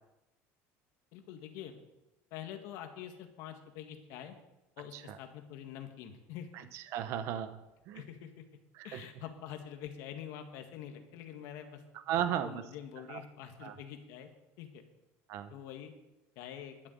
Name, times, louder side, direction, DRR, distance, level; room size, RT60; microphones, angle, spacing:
voice 1, 1.1-1.8 2.3-4.4 4.8-6.5 7.9-8.4 8.8-11.8 12.4-14.3 14.6-14.8 15.5-15.9 16.4-16.8, left 10 dB, 65° left, 6 dB, 1.9 m, -46 dB
voice 2, 6.7-7.6 7.9-8.0 8.8-9.0 12.1-12.6 13.1-13.2 13.6-13.7 15.3-15.5, right 10 dB, 55° right, 11 dB, 0.7 m, -35 dB
12.0 x 7.2 x 8.4 m, 0.94 s
cardioid pair, 160°, 6 cm